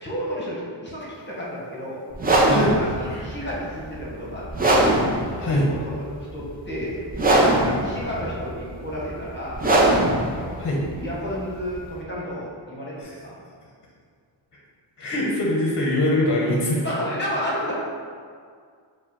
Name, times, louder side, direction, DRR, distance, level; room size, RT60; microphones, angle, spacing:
voice 1, 0.0-2.0 2.5-5.0 5.7-6.1 6.3-7.0 7.3-9.6 10.4-13.4 16.8-17.7, equal, 25° left, -6 dB, 1.1 m, -32 dB
sound 1, 2.1-12.0, right 1 dB, 20° right, 0.5 m, -22 dB
voice 2, 2.5-2.8 3.1-3.2 5.3-5.7 10.6-10.8 13.0-13.1 15.0-16.8, left 1 dB, 45° left, -3 dB, 0.8 m, -23 dB
4.5 x 2.2 x 4.5 m, 2.1 s
wide cardioid pair, 120°, 46 cm